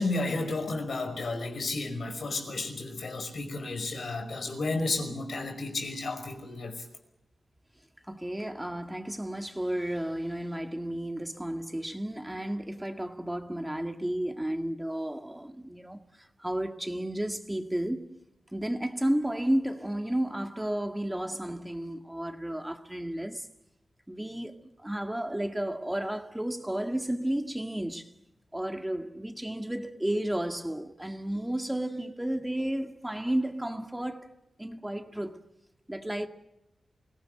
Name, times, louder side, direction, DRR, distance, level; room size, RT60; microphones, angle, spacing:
voice 1, 0.0-6.8, left 2 dB, 70° left, 5.2 m, -32 dB
voice 2, 8.1-18.2 18.5-23.5 24.1-28.1 28.5-34.3 34.6-35.4 35.9-36.3, right 1 dB, 10° right, 2.0 m, -32 dB
24.0 x 17.5 x 9.2 m
cardioid pair, 65°, 0 cm